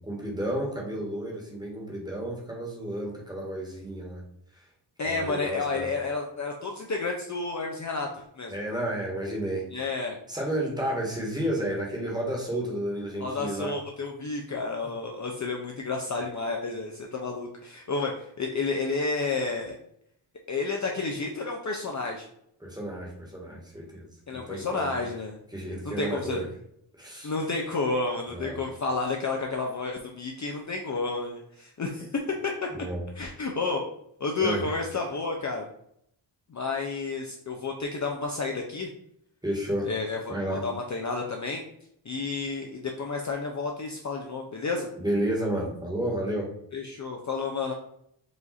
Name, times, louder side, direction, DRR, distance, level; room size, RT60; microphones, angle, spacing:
voice 1, 0.0-4.2 4.5-4.7 5.0-5.9 8.5-9.7 10.3-13.8 14.8-14.9 22.6-25.0 25.5-26.5 27.0-27.3 28.3-28.6 32.7-33.0 34.4-34.7 39.4-39.9 40.3-40.7 45.0-46.5, right 1 dB, 10° right, -2 dB, 1.3 m, -31 dB
voice 2, 5.0-8.5 9.7-10.2 13.2-19.8 20.5-22.3 24.3-25.4 25.8-26.4 27.2-32.1 33.2-33.8 34.2-35.7 36.5-38.9 39.9-40.3 40.6-41.6 42.0-44.9 46.7-47.7, left 3 dB, 40° left, 1 dB, 0.6 m, -31 dB
4.9 x 2.6 x 4.1 m, 0.73 s
wide cardioid pair, 120°, 47 cm